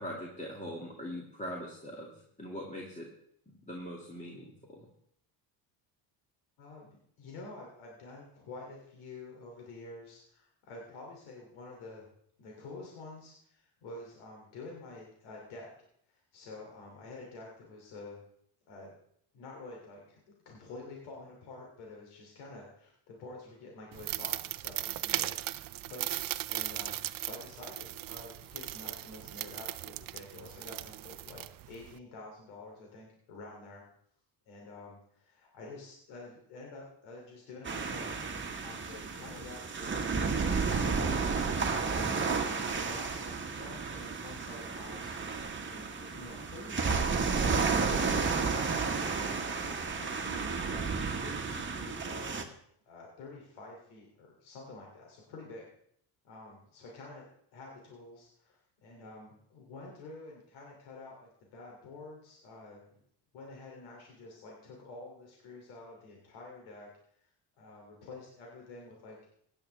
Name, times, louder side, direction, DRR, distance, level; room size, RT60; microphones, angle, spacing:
voice 1, 0.0-3.1 3.6-4.9, equal, 15° left, -2 dB, 2.2 m, -42 dB
voice 2, 6.6-6.9 7.2-12.1 12.4-15.7 16.1-18.2 18.7-18.9 19.3-33.8 34.5-38.2 38.6-45.2 45.7-48.9 49.6-52.5 52.8-55.7 56.2-57.2 57.5-63.0 63.3-66.9 67.2-67.3 67.6-69.2, left 3 dB, 85° left, -1 dB, 3.0 m, -49 dB
sound 1, 23.9-32.0, right 15 dB, 45° right, 0.5 m, -38 dB
sound 2, 37.6-52.4, right 5 dB, 25° right, 1.6 m, -32 dB
16.5 x 10.0 x 3.4 m, 0.68 s
supercardioid pair, 95°, 47 cm